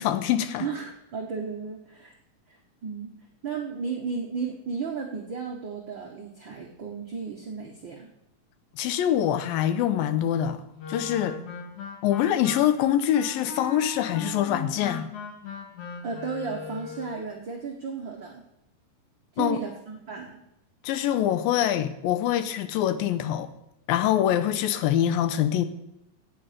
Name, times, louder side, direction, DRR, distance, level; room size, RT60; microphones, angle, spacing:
voice 1, 0.0-0.7 8.8-10.6 10.9-11.4 12.0-15.1 19.4-19.6 20.8-23.5 23.9-25.7, left 11 dB, 90° left, 2.5 m, -24 dB
voice 2, 0.6-2.1 2.5-3.1 3.4-8.1 16.0-18.4 19.3-20.4, right 5 dB, 80° right, 1.0 m, -34 dB
Wind instrument woodwind instrument, 10.8-17.2, left 4 dB, 60° left, 3.1 m, -38 dB
17.0 x 8.4 x 5.1 m
omnidirectional pair, 4.1 m